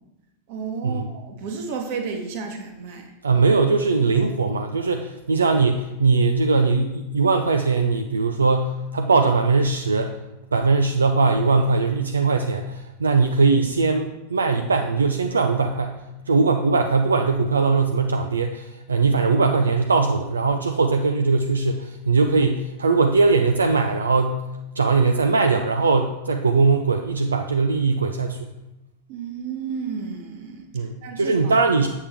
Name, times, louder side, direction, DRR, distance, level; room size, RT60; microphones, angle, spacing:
voice 1, 0.5-3.1 29.1-30.7 31.0-31.6, right 5 dB, 45° right, 4 dB, 1.3 m, -32 dB
voice 2, 3.2-10.2 10.5-24.4 24.8-28.5 30.7-31.9, right 4 dB, 75° right, 5 dB, 0.4 m, -20 dB
8.1 x 7.2 x 3.4 m, 0.97 s
figure-of-eight pair, 90°, 0 cm